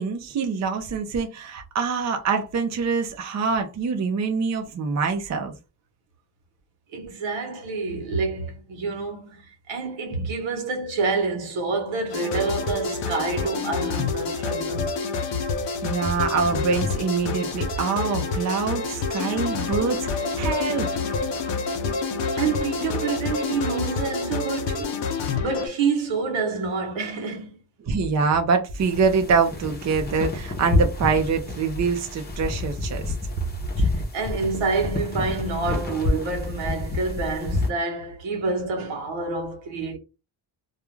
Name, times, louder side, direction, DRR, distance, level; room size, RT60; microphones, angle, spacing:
voice 1, 0.0-5.5 15.8-20.9 27.8-33.1, right 5 dB, 40° right, 0.5 m, -25 dB
voice 2, 6.9-14.9 22.3-25.0 25.4-27.6 33.8-40.0, right 4 dB, 85° right, 1.0 m, -28 dB
sound 1, 12.1-25.7, left 4 dB, 70° left, 0.6 m, -28 dB
sound 2, 28.8-37.7, left 2 dB, 20° left, 0.7 m, -28 dB
2.4 x 2.3 x 3.0 m
cardioid pair, 150°, 45 cm